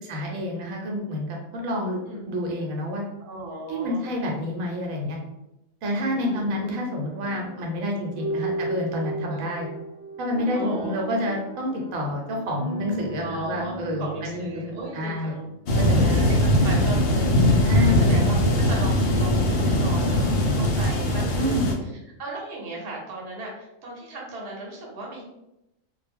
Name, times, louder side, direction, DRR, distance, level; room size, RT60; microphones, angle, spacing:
voice 1, 0.0-2.0 2.3-3.0 3.7-5.2 5.8-9.7 10.2-15.4 15.8-16.5 16.7-16.8 17.6-18.1 21.3-21.7, left 1 dB, 80° right, 0 dB, 1.0 m, -28 dB
voice 2, 3.2-4.1 6.2-6.7 9.3-9.4 10.5-11.0 13.2-15.5 16.0-19.5 19.8-21.9 22.2-25.2, right 2 dB, 55° right, -3 dB, 0.9 m, -36 dB
sound 1, 5.9-16.0, right 2 dB, 20° right, 0.5 m, -36 dB
sound 2, 15.7-21.7, left 1 dB, 60° left, 0.7 m, -20 dB
2.3 x 2.0 x 3.4 m, 0.88 s
omnidirectional pair, 1.4 m